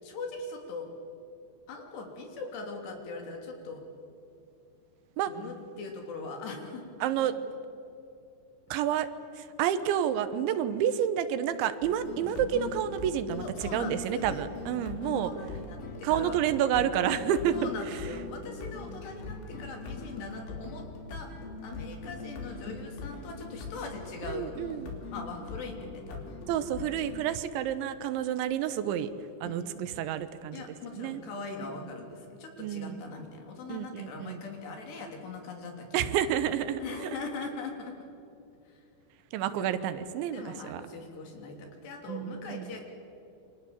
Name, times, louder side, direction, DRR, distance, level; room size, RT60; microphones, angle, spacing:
voice 1, 0.0-0.9 1.7-3.8 5.3-7.3 13.4-14.5 15.2-16.4 17.5-24.5 25.1-26.4 29.4-29.9 30.5-36.4 36.8-38.0 38.7-38.9 39.6-39.7 40.3-42.8, left 3 dB, 65° left, 3 dB, 5.2 m, -41 dB
voice 2, 7.0-7.3 8.7-9.1 9.4-13.4 13.7-15.3 16.0-17.5 24.3-24.9 26.5-29.1 29.4-30.6 31.0-31.2 32.6-33.0 33.7-34.4 35.9-37.2 39.3-40.8 42.1-42.8, right 10 dB, 85° right, 12 dB, 3.4 m, -29 dB
sound 1, 11.8-27.2, left 4 dB, 85° left, 5.7 m, -41 dB
28.5 x 25.5 x 7.3 m, 2.6 s
omnidirectional pair, 5.2 m